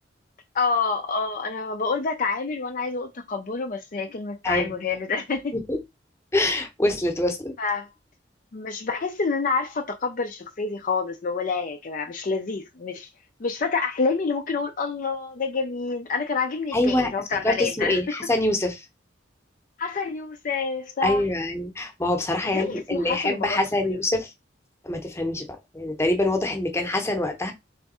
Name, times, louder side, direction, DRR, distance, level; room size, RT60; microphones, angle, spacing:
voice 1, 0.5-5.5 7.6-7.9 8.5-13.1 13.4-18.0 19.8-21.2 22.5-24.0, left 4 dB, 45° left, 0.5 m, -28 dB
voice 2, 6.3-7.5 16.7-17.1 17.4-18.8 21.0-24.3 24.8-25.5 25.7-27.5, left 1 dB, 15° left, 0.9 m, -25 dB
3.5 x 3.3 x 4.2 m
head